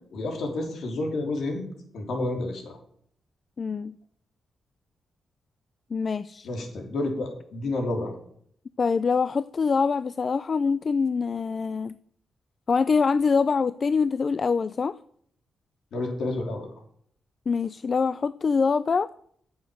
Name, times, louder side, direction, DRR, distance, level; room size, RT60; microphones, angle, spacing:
voice 1, 0.1-1.7 1.9-2.8 6.4-8.1 15.9-16.7, left 2 dB, 75° left, 2 dB, 3.3 m, -30 dB
voice 2, 3.6-3.9 5.9-6.5 8.8-12.0 12.7-15.0 17.5-19.1, left 5 dB, 50° left, 15 dB, 0.4 m, -24 dB
9.3 x 7.2 x 7.6 m, 0.65 s
cardioid pair, 65°, 0 cm